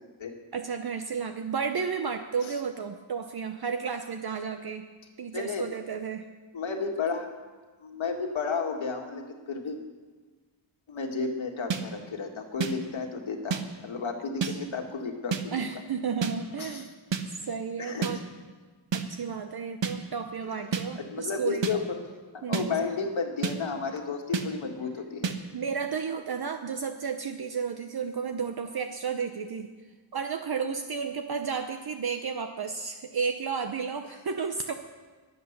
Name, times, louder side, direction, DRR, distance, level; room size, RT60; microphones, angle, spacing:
voice 1, 0.5-4.9 5.2-6.3 14.4-14.6 15.5-16.9 17.3-18.2 18.9-21.7 22.4-22.8 25.5-29.7 30.1-34.7, right 6 dB, 55° right, 6 dB, 0.8 m, -32 dB
voice 2, 5.3-5.7 6.5-7.3 7.8-9.8 10.9-15.5 16.6-16.8 17.8-18.1 20.4-20.6 21.0-22.0 22.3-25.3, left 4 dB, 85° left, 3 dB, 2.0 m, -32 dB
sound 1, 11.7-11.8 12.6-12.7 13.5-13.6 14.4-14.5 15.3-15.4 16.2-16.3 17.1-17.2 18.0-18.1 18.9-19.0 19.8-19.9 20.7-20.8 21.6-21.7 22.5-22.7 23.4-23.6 24.3-24.5 25.2-25.4, right 6 dB, 70° right, 1.2 m, -28 dB
22.5 x 8.1 x 6.7 m, 1.4 s
wide cardioid pair, 130°, 45 cm